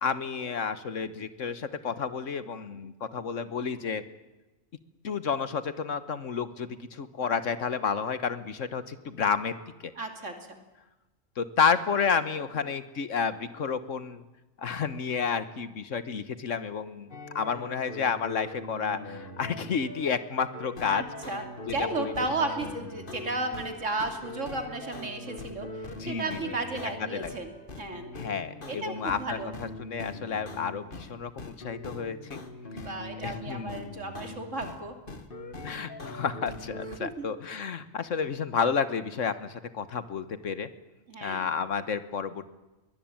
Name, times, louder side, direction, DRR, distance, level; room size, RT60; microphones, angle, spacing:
voice 1, 0.0-4.0 5.0-9.6 9.8-9.9 11.4-14.2 14.6-21.0 21.7-21.8 22.0-22.1 26.0-26.4 27.1-27.3 28.2-32.4 33.2-33.7 35.6-40.7 41.2-42.5, left 6 dB, 70° left, 13 dB, 1.6 m, -31 dB
voice 2, 9.9-10.6 20.9-28.1 28.7-29.5 32.7-35.0 37.0-37.3 41.1-41.5, right 2 dB, 70° right, 5 dB, 3.1 m, -34 dB
sound 1, 17.1-31.1 31.4-34.8 35.1-37.0, left 2 dB, 40° left, 1.9 m, -42 dB
22.0 x 19.0 x 9.0 m, 1.1 s
omnidirectional pair, 1.3 m